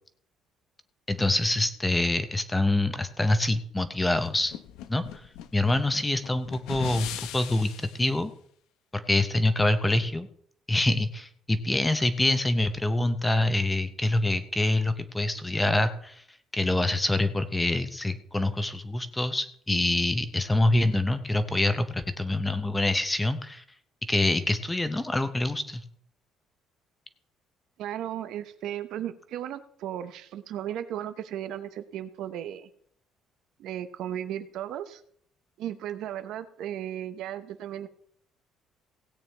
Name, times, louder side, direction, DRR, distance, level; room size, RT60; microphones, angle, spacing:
voice 1, 1.1-4.5 4.9-5.0 5.5-7.1 7.3-8.3 8.9-10.3 10.7-16.2 16.5-23.6 24.1-25.8, left 2 dB, 10° left, 10 dB, 0.6 m, -25 dB
sound 1, 4.2-8.0, left 11 dB, 85° left, 0.7 m, -40 dB
voice 2, 27.8-32.7 33.6-35.0 35.6-37.9, right 11 dB, 60° right, 11 dB, 0.8 m, -35 dB
17.0 x 8.9 x 3.3 m, 0.64 s
cardioid pair, 175°, 0 cm